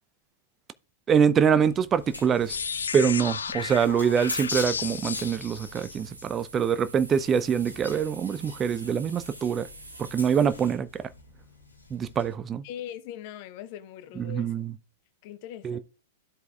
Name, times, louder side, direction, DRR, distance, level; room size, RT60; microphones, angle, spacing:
voice 1, 1.1-2.6 2.9-9.7 10.1-10.9 11.9-12.6 14.2-14.7 15.6-15.8, right 7 dB, 20° right, 0.5 m, -24 dB
sound 1, 1.6-12.3, left 2 dB, 85° left, 1.2 m, -43 dB
sound 2, 2.5-6.2, left 6 dB, 65° left, 0.3 m, -33 dB
sound 3, 4.8-10.5, right 4 dB, 75° right, 1.0 m, -47 dB
voice 2, 12.6-14.5 15.2-15.8, left 10 dB, 45° left, 0.7 m, -40 dB
13.5 x 4.6 x 2.3 m
figure-of-eight pair, 100°, 0 cm